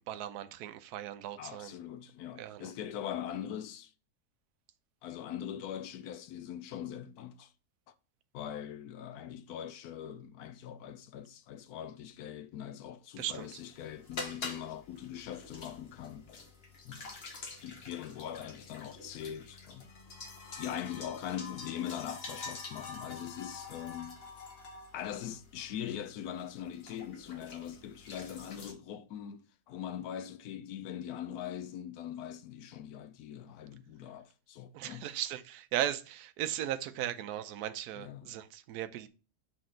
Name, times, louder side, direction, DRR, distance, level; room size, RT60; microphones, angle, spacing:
voice 1, 0.0-1.7 2.3-2.7 13.2-13.6 34.7-39.1, right 12 dB, 70° right, 1.1 m, -37 dB
voice 2, 1.4-3.9 5.0-7.5 7.9-8.0 8.3-16.4 16.8-17.2 17.6-19.9 20.6-24.2 24.9-35.1 38.0-38.4, left 10 dB, 70° left, 1.0 m, -42 dB
sound 1, 13.2-28.7, left 4 dB, 40° left, 1.2 m, -47 dB
6.1 x 4.2 x 3.8 m
omnidirectional pair, 1.8 m